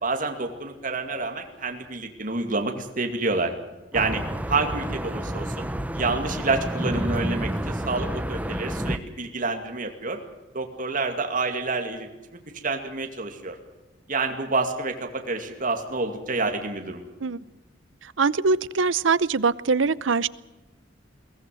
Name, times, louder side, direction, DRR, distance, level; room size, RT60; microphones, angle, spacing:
voice 1, 0.0-3.5 3.9-4.2 4.5-5.7 5.9-10.2 10.5-13.6 14.1-17.0, right 3 dB, 45° right, 4 dB, 2.4 m, -28 dB
sound 1, 3.9-9.0, equal, 10° right, 0.9 m, -29 dB
voice 2, 18.0-20.3, right 4 dB, 80° right, 18 dB, 0.7 m, -23 dB
22.5 x 17.5 x 7.8 m, 1.1 s
head